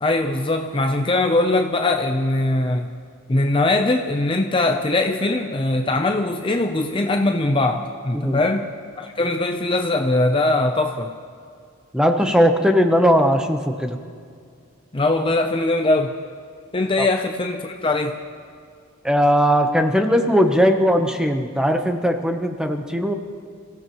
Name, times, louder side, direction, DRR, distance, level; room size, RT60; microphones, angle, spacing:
voice 1, 0.0-2.9 3.3-8.7 9.0-11.1 14.9-16.1 16.7-18.2, left 2 dB, 25° left, 4 dB, 0.6 m, -21 dB
voice 2, 11.9-14.0 17.0-17.1 19.0-23.1, equal, 5° right, 5 dB, 0.9 m, -18 dB
28.0 x 15.5 x 3.1 m, 2.2 s
head